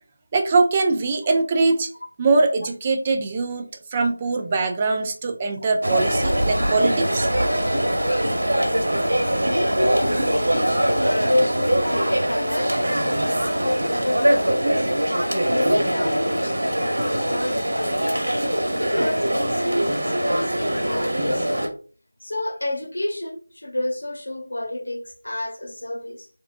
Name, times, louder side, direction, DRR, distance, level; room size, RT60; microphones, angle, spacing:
voice 1, 0.3-1.9 2.2-7.3, right 3 dB, 20° right, 0.4 m, -22 dB
sound 1, 5.8-21.7, right 1 dB, 85° right, 1.3 m, -22 dB
voice 2, 9.4-14.9 15.5-18.3 18.8-21.7 22.2-26.3, left 1 dB, 80° left, 1.0 m, -29 dB
4.0 x 3.5 x 2.6 m
figure-of-eight pair, 170°, 0 cm